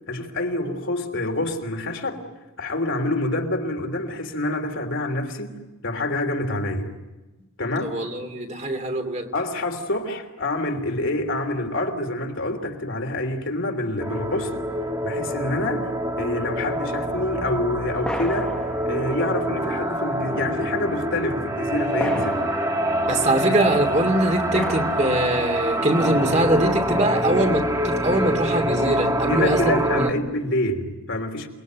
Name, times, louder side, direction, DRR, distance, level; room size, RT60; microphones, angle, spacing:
voice 1, 0.1-2.2 2.6-6.9 7.6-8.0 9.3-14.7 15.0-15.9 16.2-22.4 29.3-31.5, left 2 dB, 65° left, 3.3 m, -27 dB
voice 2, 7.8-9.3 23.0-30.1, right 1 dB, 35° right, 2.7 m, -23 dB
sound 1, 14.0-30.1, right 1 dB, 15° right, 1.8 m, -25 dB
sound 2, 16.9-17.0 18.0-19.8 20.3-20.4 22.0-23.6 24.5-26.1, equal, 5° left, 1.1 m, -35 dB
28.5 x 21.5 x 9.4 m
head